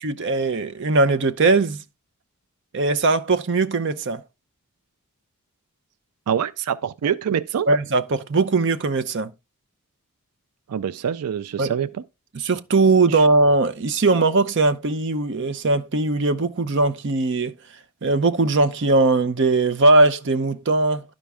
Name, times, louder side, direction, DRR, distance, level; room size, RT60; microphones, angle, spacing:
voice 1, 0.0-1.8 2.7-4.2 7.7-9.3 11.6-11.7 12.3-17.5 18.0-21.0, right 3 dB, 55° right, 0.6 m, -20 dB
voice 2, 6.3-7.7 10.7-12.0 13.1-13.2, right 8 dB, 90° right, 0.4 m, -25 dB
11.5 x 5.2 x 3.5 m
head